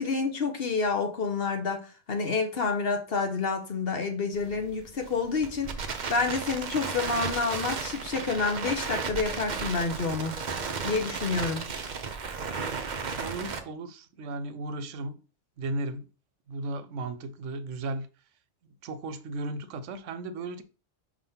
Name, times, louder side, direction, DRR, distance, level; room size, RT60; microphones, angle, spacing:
voice 1, 0.0-10.4 10.8-11.6, left 4 dB, 55° left, 1.2 m, -29 dB
Crackle, 4.3-13.6, right 5 dB, 45° right, 0.8 m, -34 dB
voice 2, 13.2-15.2 15.6-16.1 16.5-18.1 18.8-20.6, right 2 dB, 85° right, 1.0 m, -35 dB
4.8 x 3.7 x 5.6 m
omnidirectional pair, 1.2 m